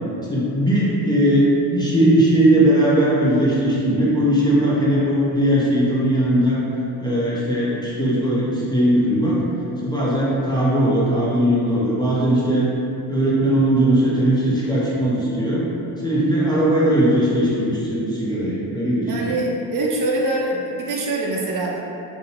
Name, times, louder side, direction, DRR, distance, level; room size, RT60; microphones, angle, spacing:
voice 1, 0.3-6.6 7.0-9.4 9.8-12.7 13.1-15.7 16.0-19.1, right 1 dB, 10° left, -8 dB, 0.5 m, -19 dB
voice 2, 19.1-21.8, right 2 dB, 50° right, -3 dB, 0.5 m, -24 dB
2.5 x 2.0 x 2.8 m, 2.7 s
supercardioid pair, 70°, 43 cm